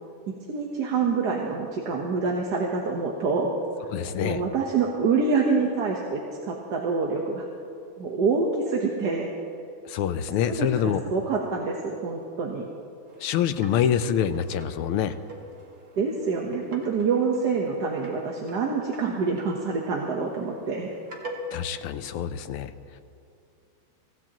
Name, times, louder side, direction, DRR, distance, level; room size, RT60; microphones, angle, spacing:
voice 1, 0.5-3.5 4.2-6.2 6.5-7.4 8.0-9.3 10.6-12.6 16.0-20.9, right 4 dB, 55° right, -1 dB, 1.6 m, -26 dB
voice 2, 3.9-4.4 9.8-11.0 13.2-15.1 21.5-22.7, left 9 dB, 80° left, 11 dB, 1.6 m, -26 dB
sound 1, 13.1-21.8, equal, 40° right, 1.8 m, -44 dB
24.5 x 16.0 x 3.0 m, 2.5 s
omnidirectional pair, 2.4 m